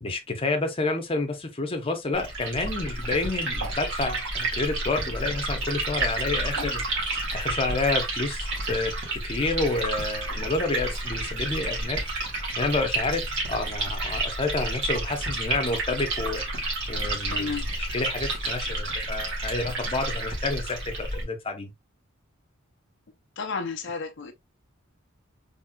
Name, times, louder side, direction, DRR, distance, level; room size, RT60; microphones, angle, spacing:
voice 1, 0.0-6.8 7.3-12.0 12.6-13.2 13.5-16.4 16.9-21.7, left 3 dB, 30° left, 0.8 m, -29 dB
Liquid, 2.1-21.2, right 2 dB, 65° right, 2.1 m, -30 dB
voice 2, 17.2-17.6 23.4-24.3, left 4 dB, 60° left, 0.5 m, -32 dB
4.2 x 3.4 x 2.3 m
head